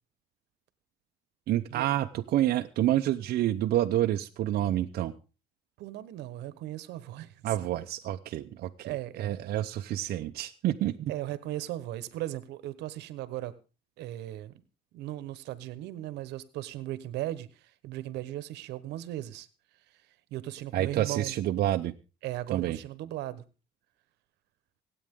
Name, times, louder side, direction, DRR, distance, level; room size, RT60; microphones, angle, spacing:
voice 1, 1.5-5.1 7.4-11.1 20.7-21.9 22.5-22.8, right 13 dB, 65° right, 5 dB, 0.7 m, -28 dB
voice 2, 5.8-7.5 8.8-9.4 11.1-13.5 14.0-14.5 14.9-19.5 20.3-21.4 22.2-23.4, right 14 dB, 85° right, 16 dB, 1.1 m, -37 dB
25.0 x 8.8 x 3.7 m, 0.33 s
cardioid pair, 110°, 17 cm